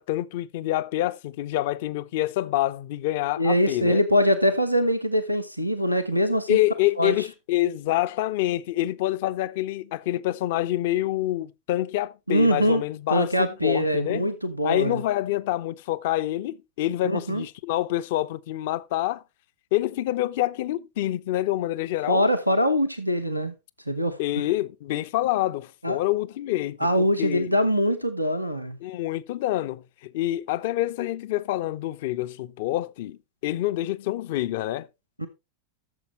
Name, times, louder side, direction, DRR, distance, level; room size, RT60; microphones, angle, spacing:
voice 1, 0.0-4.0 6.5-14.3 14.6-19.2 19.7-22.3 24.2-27.5 28.8-34.9, left 15 dB, 50° left, 0.5 m, -27 dB
voice 2, 3.4-6.6 7.0-7.1 12.3-12.8 13.1-15.0 17.0-17.4 22.1-23.5 23.9-24.2 25.8-26.0 26.8-28.8 35.2-35.3, equal, 90° left, 0.8 m, -23 dB
13.0 x 7.1 x 3.1 m
figure-of-eight pair, 90°, 0 cm